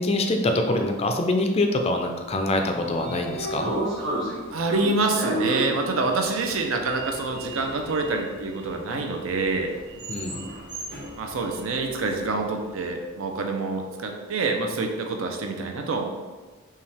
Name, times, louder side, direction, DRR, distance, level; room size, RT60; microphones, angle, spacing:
voice 1, 0.0-3.7 10.1-10.5, left 2 dB, 30° left, 4 dB, 0.4 m, -24 dB
Sliding door, 2.6-12.6, right 1 dB, 55° right, 1.4 m, -34 dB
voice 2, 4.5-9.7 11.1-16.0, right 3 dB, 70° right, 3 dB, 0.6 m, -26 dB
5.6 x 2.3 x 3.3 m, 1.3 s
head